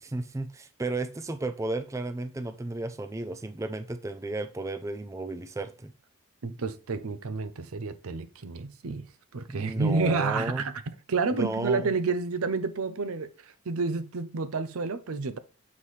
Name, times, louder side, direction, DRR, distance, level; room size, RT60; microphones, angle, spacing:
voice 1, 0.0-5.9 9.5-10.6 11.3-11.9, right 2 dB, 15° right, 0.3 m, -33 dB
voice 2, 6.4-9.1 9.3-10.8 11.1-15.4, right 4 dB, 85° right, 0.6 m, -29 dB
7.3 x 4.1 x 3.2 m
head